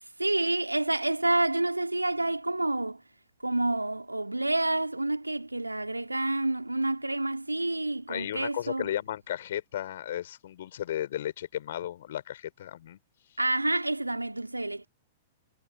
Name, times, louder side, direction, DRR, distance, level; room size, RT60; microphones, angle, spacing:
voice 1, 0.2-3.0 3.4-8.9 13.4-14.9, right 2 dB, 85° right, 2.7 m, -28 dB
voice 2, 8.1-13.0, left 11 dB, 55° left, 4.2 m, -34 dB
figure-of-eight pair, 100°, 0 cm